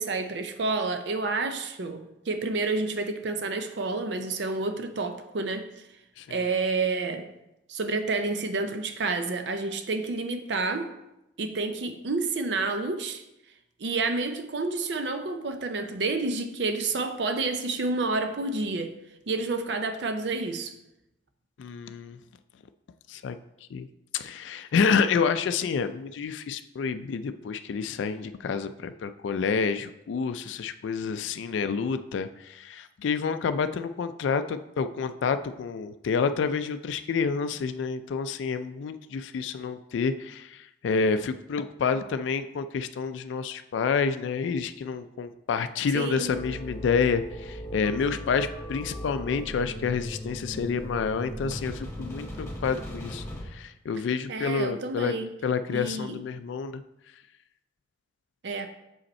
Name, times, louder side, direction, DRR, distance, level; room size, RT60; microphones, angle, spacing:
voice 1, 0.0-5.7 6.3-7.3 7.7-10.9 11.4-13.2 13.8-19.0 19.3-20.7 45.9-46.4 54.3-55.3 55.7-56.2 58.4-58.7, right 3 dB, 70° right, 7 dB, 0.5 m, -29 dB
voice 2, 6.2-6.5 21.6-22.2 23.1-23.4 23.7-23.9 24.1-55.1 55.4-56.8, left 5 dB, 85° left, 10 dB, 0.3 m, -28 dB
sound 1, 46.3-53.4, equal, 15° left, 1.5 m, -38 dB
6.5 x 5.2 x 4.2 m, 0.90 s
head